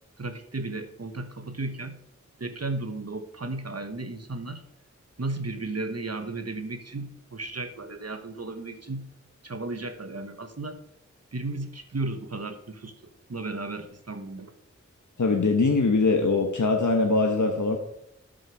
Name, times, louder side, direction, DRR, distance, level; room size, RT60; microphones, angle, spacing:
voice 1, 0.2-2.0 2.4-4.6 5.2-9.1 9.4-10.8 11.3-14.5, right 2 dB, 55° right, 8 dB, 1.2 m, -34 dB
voice 2, 15.2-17.8, left 3 dB, 80° left, 3 dB, 1.1 m, -22 dB
12.0 x 6.6 x 4.7 m, 0.76 s
wide cardioid pair, 45°, 30 cm